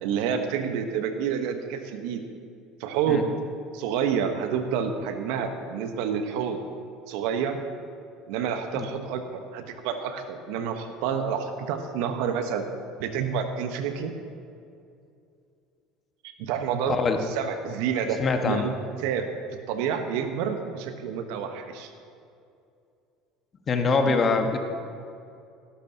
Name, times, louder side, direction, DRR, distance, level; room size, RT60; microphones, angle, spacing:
voice 1, 0.0-2.2 2.8-3.2 3.7-6.6 7.1-7.6 8.3-12.7 13.0-14.1 16.4-17.0 17.3-18.2 18.4-18.7 19.0-19.3 19.7-21.9, right 7 dB, 70° right, 7 dB, 1.1 m, -28 dB
voice 2, 16.9-17.2 18.2-18.7 23.7-24.6, left 4 dB, 35° left, 5 dB, 1.4 m, -23 dB
18.0 x 11.5 x 2.8 m, 2.5 s
hypercardioid pair, 75°, 0 cm